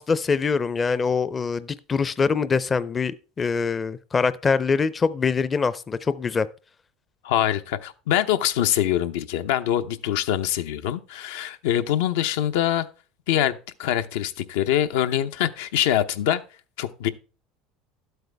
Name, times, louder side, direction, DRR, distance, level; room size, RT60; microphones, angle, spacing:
voice 1, 0.0-6.5, left 5 dB, 20° left, 0.5 m, -24 dB
voice 2, 7.2-12.9 13.3-16.4 16.8-17.1, left 11 dB, 85° left, 0.8 m, -24 dB
12.0 x 8.0 x 3.4 m
supercardioid pair, 130°, 0 cm